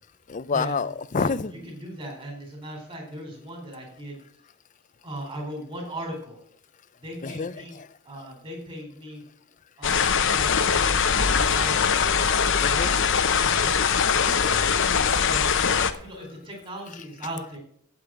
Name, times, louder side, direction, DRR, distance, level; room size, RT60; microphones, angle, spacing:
voice 1, 0.3-1.5 7.2-7.9 12.6-13.0 16.9-17.0, left 5 dB, 35° left, 16 dB, 0.5 m, -28 dB
voice 2, 1.6-4.2 5.0-6.4 7.0-7.8 8.0-9.2 9.8-12.0 13.4-13.7 14.2-15.5 16.0-17.6, right 1 dB, 25° right, 1 dB, 4.1 m, -38 dB
sound 1, 9.8-15.9, left 6 dB, 60° left, 0.9 m, -22 dB
8.7 x 8.6 x 7.6 m, 0.63 s
head